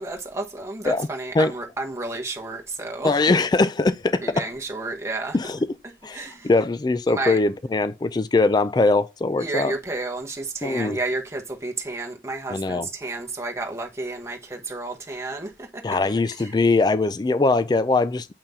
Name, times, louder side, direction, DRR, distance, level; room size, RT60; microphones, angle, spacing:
voice 1, 0.0-3.2 4.2-5.4 6.1-6.5 7.1-7.4 9.4-15.8 16.3-16.5, right 2 dB, 15° right, 1.2 m, -31 dB
voice 2, 3.0-4.2 5.3-5.6 6.0-9.7 10.6-11.0 12.5-12.9 15.8-18.3, left 3 dB, 25° left, 0.3 m, -21 dB
6.9 x 5.6 x 2.7 m
head